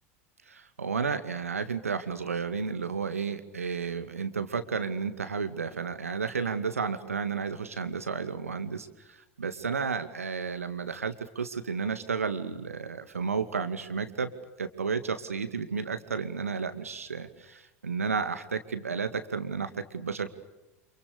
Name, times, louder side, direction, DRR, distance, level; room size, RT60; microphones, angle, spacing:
voice 1, 0.5-14.3 14.6-20.3, right 5 dB, 80° right, 10 dB, 2.3 m, -32 dB
30.0 x 28.0 x 6.8 m, 1.0 s
figure-of-eight pair, 80°, 8 cm